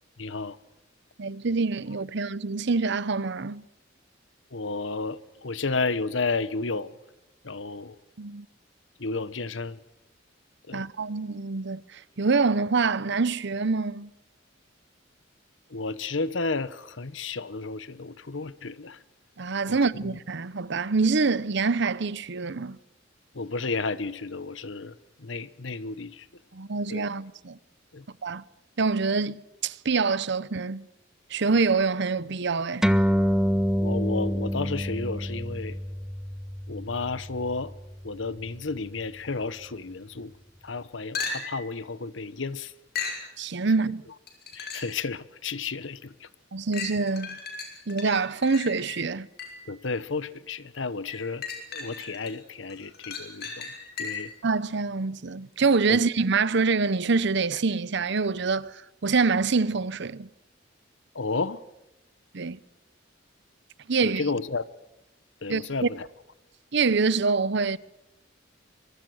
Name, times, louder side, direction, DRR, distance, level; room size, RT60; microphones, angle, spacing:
voice 1, 0.2-0.6 4.5-6.9 7.4-7.9 9.0-9.8 10.7-10.8 15.7-19.0 19.7-20.2 23.3-24.9 25.2-26.2 26.9-27.1 27.9-28.0 33.8-35.8 36.7-37.7 38.0-40.3 40.6-42.7 44.5-46.1 49.7-51.4 51.7-53.7 54.0-54.3 55.9-56.0 61.1-61.6 64.0-64.6 65.4-65.8, left 3 dB, 70° left, 1.1 m, -32 dB
voice 2, 1.2-3.6 8.2-8.5 10.7-14.1 19.4-22.8 26.5-27.6 28.2-28.4 28.8-30.9 31.3-32.9 43.4-44.0 46.5-47.4 47.9-49.3 54.4-60.3 62.3-62.6 63.9-64.3 65.5-65.9 66.7-67.8, right 4 dB, 65° right, 0.8 m, -25 dB
sound 1, 32.8-39.7, equal, 5° right, 1.4 m, -28 dB
sound 2, 41.1-41.7 42.9-43.3 44.3-45.0 45.6-45.7 46.7-49.7 51.1-52.3 52.7-54.4 58.2-58.3, left 5 dB, 55° left, 5.8 m, -36 dB
24.5 x 23.5 x 6.4 m
head